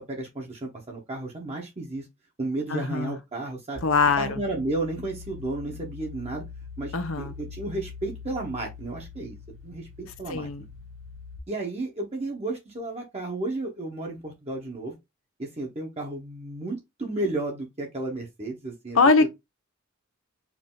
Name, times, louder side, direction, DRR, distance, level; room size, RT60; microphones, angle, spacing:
voice 1, 0.0-2.1 2.4-3.8 4.2-6.4 6.8-9.4 9.6-9.9 10.2-10.7 11.5-14.9 15.4-19.3, right 2 dB, 30° right, 1.2 m, -33 dB
voice 2, 2.7-3.1 3.8-4.4 6.9-7.3 10.3-10.6 18.9-19.3, left 4 dB, 75° left, 0.8 m, -22 dB
sound 1, 3.8-11.4, left 5 dB, 90° right, 2.5 m, -43 dB
4.8 x 2.7 x 3.8 m
head